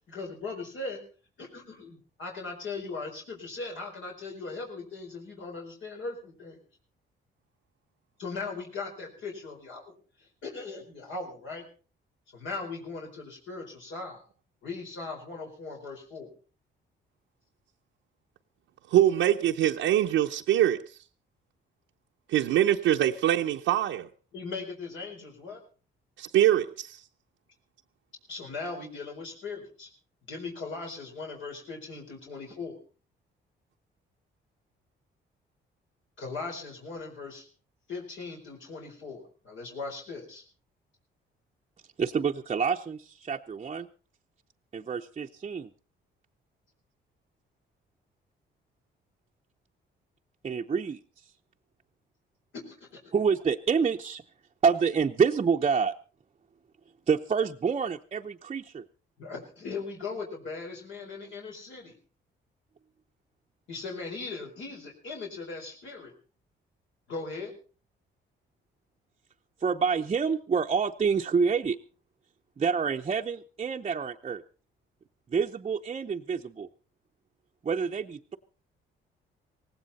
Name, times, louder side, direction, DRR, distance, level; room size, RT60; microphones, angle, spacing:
voice 1, 0.1-1.0 1.4-6.6 8.2-11.6 12.3-14.2 14.6-16.3 24.3-25.6 28.3-29.9 30.3-32.8 36.2-37.5 37.9-40.4 52.5-53.0 59.2-62.0 63.7-66.1 67.1-67.5, left 3 dB, 75° left, 4.5 m, -39 dB
voice 2, 18.9-20.8 22.3-24.1 26.2-27.0, right 12 dB, 85° right, 0.8 m, -23 dB
voice 3, 42.0-43.9 44.7-45.7 50.4-51.3 53.1-54.2 54.6-55.9 57.1-58.8 69.6-71.8 72.6-74.4 75.3-76.7 77.6-78.4, right 6 dB, 30° right, 0.7 m, -27 dB
18.0 x 16.0 x 4.2 m
cardioid pair, 90°, 20 cm